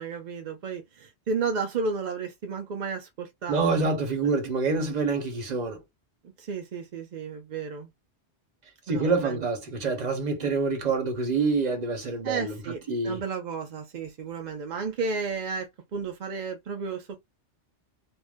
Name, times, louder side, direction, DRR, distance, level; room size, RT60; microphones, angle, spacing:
voice 1, 0.0-4.0 6.4-7.9 8.9-9.4 12.2-17.2, right 5 dB, 55° right, 0.5 m, -33 dB
voice 2, 3.5-5.8 8.9-12.5 12.9-13.2, right 4 dB, 40° right, 0.8 m, -26 dB
2.5 x 2.2 x 3.3 m
omnidirectional pair, 1.2 m